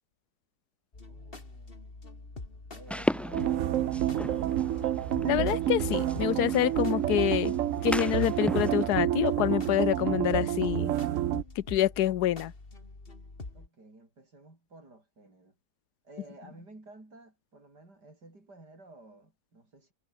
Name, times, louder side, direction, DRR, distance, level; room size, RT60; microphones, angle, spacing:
sound 1, 0.9-13.7, left 3 dB, 35° left, 3.1 m, -45 dB
voice 1, 1.1-1.9 2.7-4.7 13.5-15.6 16.0-19.9, right 2 dB, 90° right, 7.2 m, -53 dB
sound 2, 2.9-8.9, equal, ahead, 0.9 m, -37 dB
sound 3, 3.3-11.4, right 12 dB, 65° right, 0.9 m, -29 dB
voice 2, 5.2-7.5 7.8-10.9 11.6-12.5, left 13 dB, 75° left, 1.4 m, -27 dB
omnidirectional pair, 1.7 m